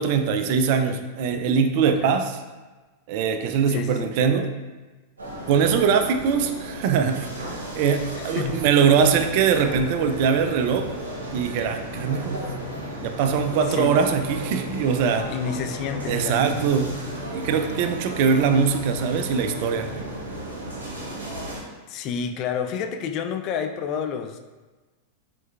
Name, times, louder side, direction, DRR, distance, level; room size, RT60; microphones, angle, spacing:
voice 1, 0.0-2.4 3.1-4.5 5.5-10.9 11.3-12.5 13.0-15.3 16.1-16.9 17.3-19.9, right 6 dB, 45° right, 7 dB, 0.4 m, -22 dB
voice 2, 1.8-2.2 3.7-4.1 8.2-8.6 13.7-13.9 15.3-16.8 21.9-24.4, left 7 dB, 40° left, 6 dB, 0.4 m, -30 dB
sound 1, 5.2-21.6, right 1 dB, 70° right, 1.0 m, -34 dB
6.2 x 3.1 x 2.3 m, 1.2 s
figure-of-eight pair, 90°, 0 cm